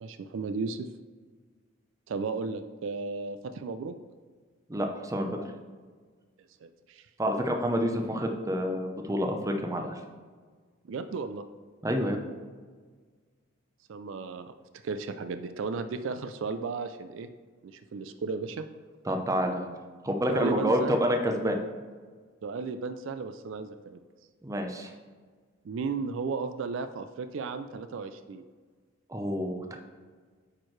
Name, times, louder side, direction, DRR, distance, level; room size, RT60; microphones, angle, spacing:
voice 1, 0.0-0.9 2.1-3.9 6.6-7.1 10.8-11.4 13.9-14.5 14.8-17.3 17.6-18.7 20.3-21.0 22.4-24.0 25.6-28.4, right 4 dB, 65° right, 10 dB, 0.4 m, -34 dB
voice 2, 4.7-5.4 7.2-10.0 11.8-12.2 19.1-19.7 20.0-21.6 24.4-24.9 29.1-29.8, equal, 15° right, 4 dB, 0.6 m, -28 dB
8.7 x 4.6 x 3.2 m, 1.5 s
head